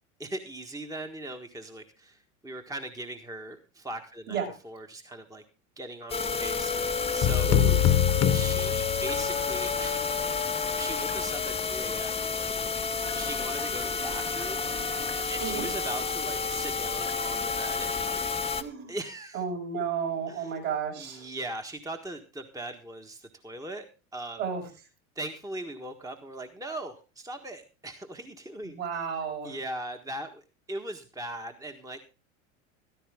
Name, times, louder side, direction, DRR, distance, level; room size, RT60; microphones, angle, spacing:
voice 1, 0.2-5.4 5.8-7.6 8.3-10.4 10.7-12.5 13.1-14.9 15.3-18.2 18.9-19.4 20.3-20.5 21.0-23.9 24.1-24.4 25.1-29.1 29.4-30.4 30.7-32.0, right 1 dB, 10° right, 5 dB, 1.5 m, -39 dB
sound 1, 6.1-18.6, left 5 dB, 15° left, 1.0 m, -30 dB
sound 2, 7.2-9.5, left 10 dB, 40° left, 1.2 m, -24 dB
voice 2, 18.6-18.9 19.3-21.3 24.4-24.6 28.6-29.6, right 6 dB, 55° right, 0 dB, 6.9 m, -32 dB
15.0 x 12.5 x 3.6 m, 0.32 s
hypercardioid pair, 85°, 40 cm